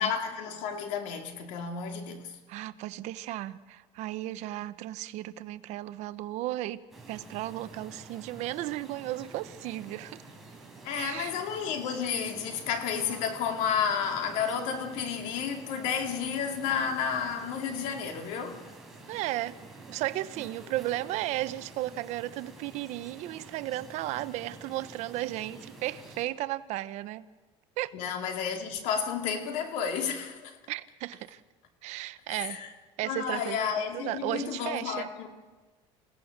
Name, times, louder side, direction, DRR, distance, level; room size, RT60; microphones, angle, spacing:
voice 1, 0.0-2.4 10.8-18.6 27.9-30.6 32.3-32.7 33.0-35.3, left 7 dB, 75° left, 2.7 m, -31 dB
voice 2, 2.5-6.8 7.1-10.2 10.9-11.3 19.1-19.6 19.9-27.3 27.8-27.9 30.7-31.4 31.8-32.6 33.0-33.7 33.9-35.1, right 15 dB, 65° right, 0.9 m, -34 dB
sound 1, 6.9-26.3, right 3 dB, ahead, 4.4 m, -49 dB
28.0 x 17.0 x 6.6 m
cardioid pair, 140°, 13 cm